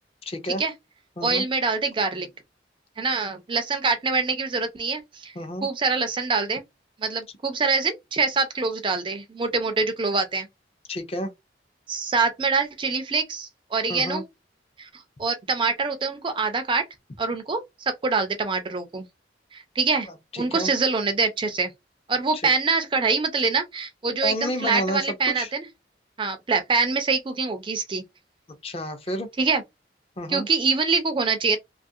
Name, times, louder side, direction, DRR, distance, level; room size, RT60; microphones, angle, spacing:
voice 1, 0.2-0.6 1.2-1.4 5.4-5.7 10.9-11.3 13.9-14.2 20.3-20.7 22.3-22.4 24.2-25.5 28.6-29.3 30.2-30.5, left 1 dB, 30° left, 0.5 m, -30 dB
voice 2, 1.2-2.3 3.0-5.3 5.6-6.6 7.0-10.5 11.9-14.2 14.8-14.9 15.2-16.8 17.2-19.1 19.5-20.1 20.4-21.7 22.1-25.7 26.2-28.0 29.4-29.6 30.3-31.6, right 4 dB, 25° right, 0.4 m, -25 dB
2.9 x 2.4 x 2.6 m
head